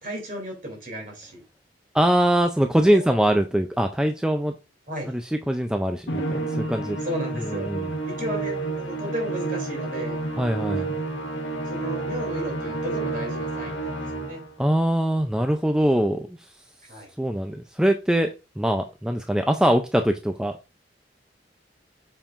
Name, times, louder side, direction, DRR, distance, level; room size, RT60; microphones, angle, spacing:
voice 1, 0.0-1.4 2.9-3.2 4.9-5.1 7.0-7.7 8.0-10.2 11.6-14.4 16.8-17.1, right 1 dB, 45° right, 1 dB, 2.9 m, -34 dB
voice 2, 1.9-4.5 5.5-7.0 7.7-7.9 10.4-10.9 14.6-16.3 17.2-20.6, right 1 dB, 5° right, 5 dB, 0.4 m, -22 dB
Musical instrument, 6.1-14.5, right 2 dB, 85° left, 1.3 m, -30 dB
7.2 x 5.4 x 2.5 m, 0.28 s
head